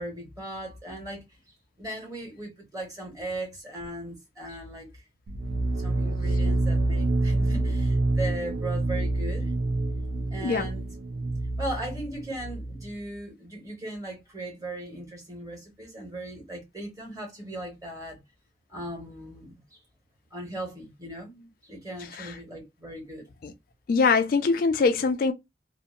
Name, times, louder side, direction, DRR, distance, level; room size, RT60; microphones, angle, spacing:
voice 1, 0.0-4.9 5.5-9.5 10.3-10.9 11.6-18.2 18.7-19.8 20.3-23.3, right 1 dB, 20° right, 1.3 m, -38 dB
sound 1, 5.3-12.9, right 2 dB, 65° right, 0.4 m, -27 dB
voice 2, 10.4-10.7 22.0-22.4 23.4-23.5 23.9-25.3, left 4 dB, 50° left, 0.3 m, -23 dB
2.8 x 2.1 x 2.4 m
head